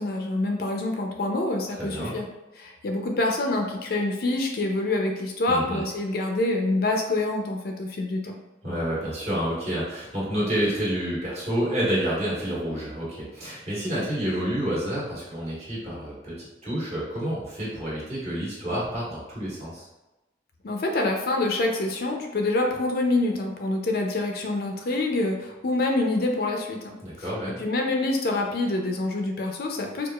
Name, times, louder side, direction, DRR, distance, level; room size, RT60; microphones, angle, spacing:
voice 1, 0.0-2.3 2.6-8.4 20.6-27.0 27.6-30.1, left 2 dB, 55° left, 2 dB, 0.4 m, -26 dB
voice 2, 1.8-2.1 5.5-5.8 8.6-19.8 27.0-27.6, equal, 35° right, -8 dB, 1.3 m, -29 dB
4.6 x 2.4 x 2.3 m, 1.0 s
head